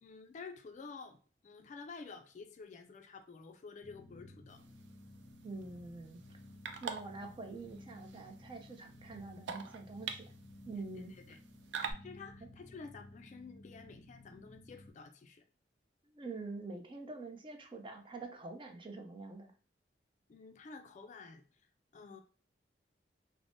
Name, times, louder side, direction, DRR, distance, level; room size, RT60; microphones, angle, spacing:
voice 1, 0.0-1.2 1.4-4.6 11.3-11.4 12.0-15.4 20.3-21.4 21.9-22.2, left 4 dB, 45° left, 7 dB, 0.3 m, -50 dB
sound 1, 3.8-14.9, left 1 dB, 20° left, 1.0 m, -55 dB
sound 2, 4.5-11.9, right 6 dB, 90° right, 0.4 m, -47 dB
voice 2, 5.4-6.2 6.8-10.3 10.7-11.1 16.1-19.5, right 3 dB, 30° right, 4 dB, 0.4 m, -45 dB
3.3 x 2.0 x 2.5 m, 0.39 s
head